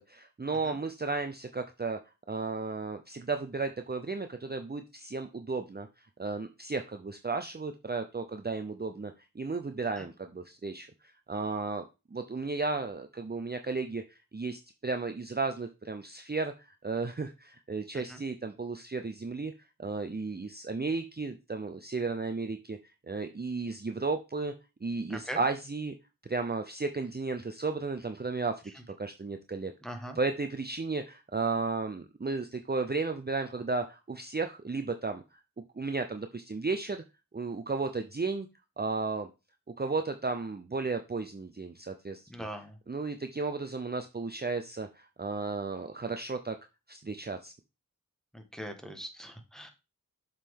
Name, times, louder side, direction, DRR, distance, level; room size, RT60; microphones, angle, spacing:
voice 1, 0.0-2.0 2.3-5.9 6.2-10.9 11.3-11.8 12.1-19.5 19.8-22.8 23.1-24.5 24.8-25.9 26.2-29.7 30.2-35.2 35.8-37.0 37.3-38.5 38.8-39.3 39.8-42.5 42.9-46.6 46.9-47.5, right 3 dB, 30° right, 7 dB, 0.6 m, -34 dB
voice 2, 25.1-25.4 29.8-30.2 42.3-42.8 48.3-49.7, equal, ahead, 5 dB, 1.5 m, -41 dB
7.2 x 5.3 x 3.7 m, 0.28 s
wide cardioid pair, 45°, 33 cm